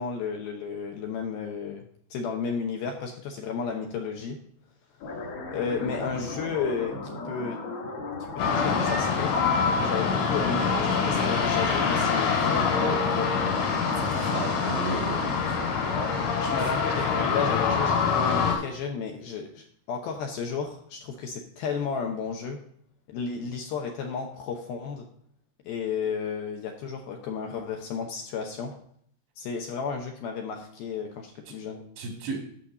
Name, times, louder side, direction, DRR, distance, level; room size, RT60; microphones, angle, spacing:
voice 1, 0.0-4.4 5.5-7.6 8.4-9.3 9.7-13.3 16.4-22.6 23.1-25.1 25.7-28.8 29.4-31.8, left 6 dB, 75° left, 2 dB, 2.3 m, -33 dB
sound 1, 5.0-18.2, left 2 dB, 55° left, 1.8 m, -39 dB
sound 2, 8.4-18.5, left 5 dB, 90° left, 5.0 m, -25 dB
voice 2, 14.0-15.6 31.5-31.6 32.0-32.4, right 4 dB, 85° right, 1 dB, 4.5 m, -35 dB
11.5 x 4.1 x 6.6 m, 0.66 s
omnidirectional pair, 5.2 m